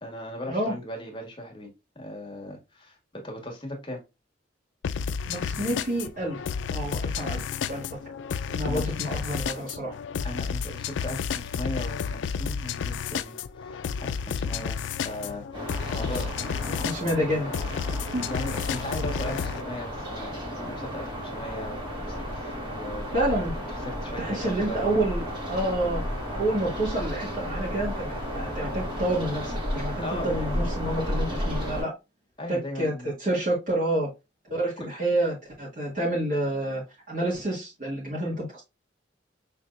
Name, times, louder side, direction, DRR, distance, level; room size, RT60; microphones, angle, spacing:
voice 1, 0.0-4.0 8.7-8.8 10.2-16.2 18.3-23.3 23.8-24.9 30.0-30.7 32.4-33.2, left 1 dB, 25° left, 1.5 m, -38 dB
sound 1, 4.8-19.6, left 6 dB, 85° left, 0.4 m, -31 dB
voice 2, 5.2-6.4 6.7-7.8 8.5-10.0 16.7-17.6 18.1-18.3 23.1-23.5 24.2-26.0 26.3-31.9 32.5-34.1 34.5-38.6, right 1 dB, 45° right, 1.8 m, -29 dB
sound 2, 15.5-31.8, equal, 25° right, 2.2 m, -33 dB
5.9 x 3.4 x 2.5 m
head